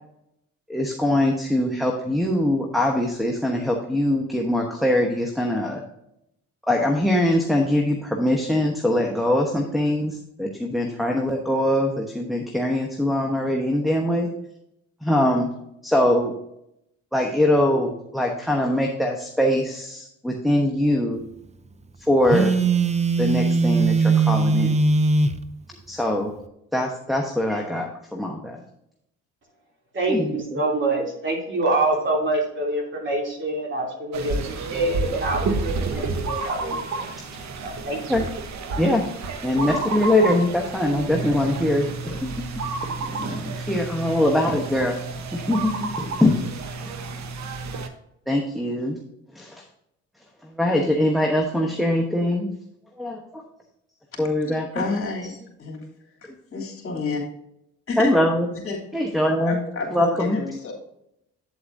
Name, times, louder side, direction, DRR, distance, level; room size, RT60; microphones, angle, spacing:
voice 1, 0.7-5.8 6.7-14.3 15.0-15.5 15.8-16.3 17.1-21.2 22.1-22.6 23.2-24.8 25.9-26.3 26.7-28.6 30.1-30.6 38.1-38.2 38.8-39.0 39.4-42.3 43.1-45.0 45.3-46.3 48.3-49.0 49.3-49.6 50.4-52.5 53.0-53.4 54.2-54.9 58.0-58.5 58.9-59.6 59.9-60.4, left 1 dB, ahead, 2 dB, 1.1 m, -22 dB
Telephone, 22.3-25.4, right 4 dB, 20° right, 0.6 m, -20 dB
voice 2, 29.9-37.1 37.6-38.2, right 2 dB, 40° right, -1 dB, 3.0 m, -26 dB
sound 1, 34.1-47.9, right 3 dB, 65° right, 1.1 m, -30 dB
voice 3, 54.7-55.3 55.6-55.8 56.2-57.2 57.9-58.2 58.6-58.8 59.4-60.7, left 4 dB, 45° left, -1 dB, 2.9 m, -29 dB
8.7 x 8.0 x 2.6 m, 0.79 s
cardioid pair, 90°, 30 cm